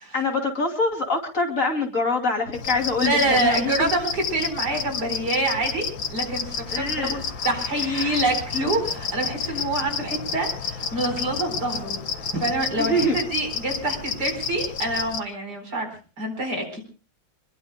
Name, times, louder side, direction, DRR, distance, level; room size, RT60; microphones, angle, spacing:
voice 1, 0.1-3.9 6.7-7.2 7.8-8.2 12.8-13.2, left 2 dB, 45° left, 3 dB, 3.2 m, -25 dB
sound 1, 2.5-15.2, left 6 dB, 90° left, 2.2 m, -31 dB
voice 2, 3.0-12.0 12.3-15.9 16.2-16.8, right 2 dB, 60° right, 5 dB, 5.0 m, -26 dB
26.5 x 22.5 x 2.2 m, 0.36 s
omnidirectional pair, 2.0 m